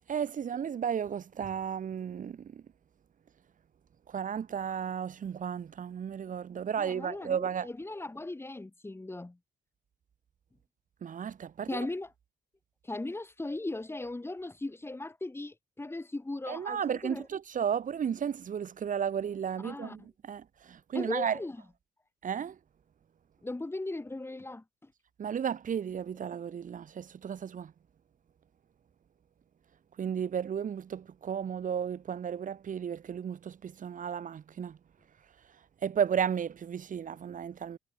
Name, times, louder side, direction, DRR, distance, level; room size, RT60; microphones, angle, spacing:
voice 1, 0.1-2.6 4.1-7.7 11.0-11.9 16.5-21.4 22.2-22.6 25.2-27.7 30.0-34.8 35.8-37.8, right 8 dB, 50° right, 4.8 m, -34 dB
voice 2, 6.8-9.4 11.7-12.1 12.8-17.3 19.6-20.0 20.9-21.6 23.4-24.6, left 2 dB, 15° left, 6.8 m, -38 dB
cardioid pair, 90°, 17 cm